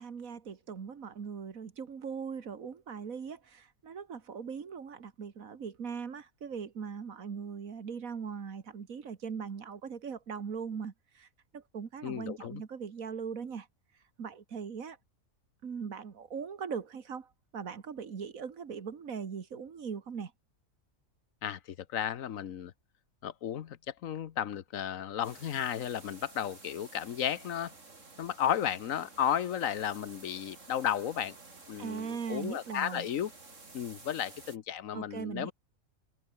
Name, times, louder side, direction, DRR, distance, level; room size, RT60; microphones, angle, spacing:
voice 1, 0.0-11.3 11.5-13.7 14.2-15.0 15.6-20.3 31.8-33.1 34.9-35.5, right 6 dB, 80° right, 2.1 m, -40 dB
voice 2, 12.0-12.6 21.4-22.7 23.2-27.7 28.2-31.4 31.7-33.3 33.7-35.5, left 9 dB, 75° left, 1.3 m, -34 dB
sound 1, 25.2-34.6, right 3 dB, 65° right, 3.7 m, -53 dB
omnidirectional pair, 1.4 m